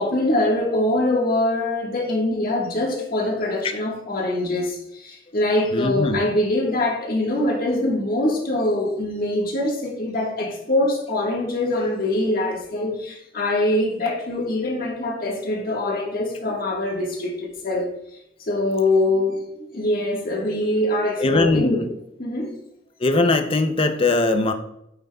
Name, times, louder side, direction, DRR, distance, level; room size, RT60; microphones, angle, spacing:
voice 1, 0.0-17.9 18.4-21.8 22.2-22.5, left 1 dB, 50° left, 1.5 m, -23 dB
voice 2, 5.7-6.2 21.2-21.9 23.0-24.5, left 2 dB, 30° left, 0.5 m, -20 dB
9.0 x 5.6 x 2.3 m
head